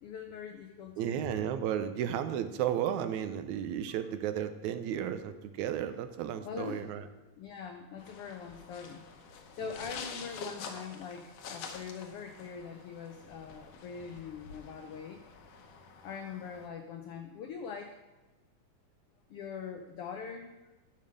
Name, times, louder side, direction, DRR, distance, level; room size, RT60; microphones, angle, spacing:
voice 1, 0.0-1.3 6.4-6.9 7.4-9.0 9.6-15.2 16.0-18.0 19.3-20.5, left 6 dB, 90° left, 5 dB, 1.2 m, -42 dB
voice 2, 1.0-7.0, right 10 dB, 80° right, 10 dB, 2.0 m, -33 dB
sound 1, 8.0-16.7, left 5 dB, 65° left, 1.8 m, -47 dB
11.0 x 5.3 x 6.4 m, 1.1 s
omnidirectional pair, 3.4 m